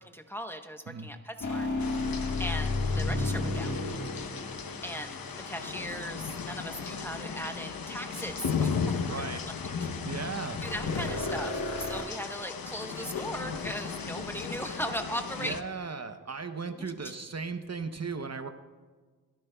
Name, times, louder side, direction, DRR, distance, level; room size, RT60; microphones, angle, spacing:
voice 1, 0.1-1.7 2.4-3.8 4.8-9.1 10.6-15.6 16.8-16.9, equal, 5° left, 5 dB, 0.9 m, -38 dB
sound 1, 1.4-5.7 10.6-12.0, left 2 dB, 55° left, 1.6 m, -32 dB
sound 2, 1.8-15.6, left 5 dB, 70° left, 0.9 m, -36 dB
voice 2, 9.1-9.5 10.1-10.6 15.4-18.5, right 4 dB, 45° right, 8 dB, 0.8 m, -37 dB
28.0 x 10.5 x 2.3 m, 1.4 s
wide cardioid pair, 75°, 36 cm